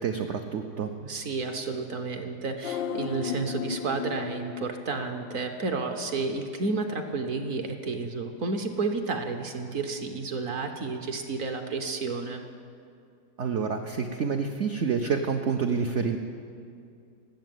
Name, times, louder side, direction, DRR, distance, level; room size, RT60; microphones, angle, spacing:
voice 1, 0.0-0.9 13.4-16.2, right 6 dB, 80° right, 5 dB, 0.6 m, -28 dB
voice 2, 1.0-12.4, right 3 dB, 55° right, 6 dB, 1.0 m, -31 dB
sound 1, 2.6-5.9 6.2-6.3, left 6 dB, 80° left, 1.3 m, -35 dB
13.0 x 8.0 x 9.2 m, 2.4 s
omnidirectional pair, 2.0 m